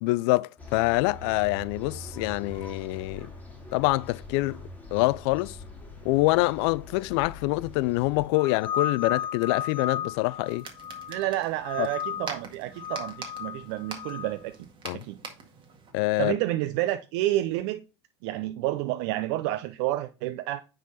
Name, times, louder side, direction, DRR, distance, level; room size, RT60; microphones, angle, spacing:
voice 1, 0.0-3.3 3.7-4.6 4.9-5.6 6.0-10.6 11.8-11.9 14.8-15.0 15.9-16.4, left 21 dB, 65° left, 0.4 m, -25 dB
sound 1, 0.6-8.3, left 1 dB, 10° left, 2.4 m, -44 dB
sound 2, 8.4-11.3 11.6-12.4 12.8-14.3, left 9 dB, 35° left, 1.1 m, -34 dB
sound 3, 10.4-15.9, right 5 dB, 35° right, 1.9 m, -44 dB
voice 2, 11.1-14.5 14.9-15.2 16.2-17.8 18.2-20.6, right 15 dB, 65° right, 0.5 m, -29 dB
9.3 x 3.9 x 4.1 m
hypercardioid pair, 90°, 14 cm